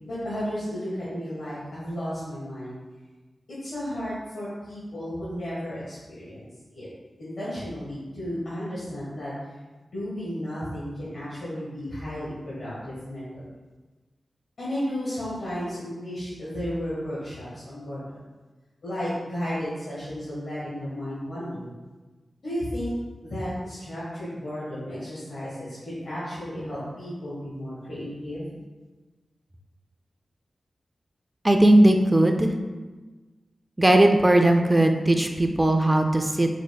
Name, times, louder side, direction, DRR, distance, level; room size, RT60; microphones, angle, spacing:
voice 1, 0.0-2.8 3.6-6.9 7.2-9.3 9.8-13.5 14.6-18.2 18.8-21.7 22.4-22.9 23.2-28.5, equal, 70° left, -11 dB, 1.5 m, -33 dB
voice 2, 31.4-32.5 33.8-36.5, right 1 dB, 20° right, 4 dB, 0.4 m, -18 dB
4.6 x 4.2 x 2.3 m, 1.3 s
wide cardioid pair, 115°, 0 cm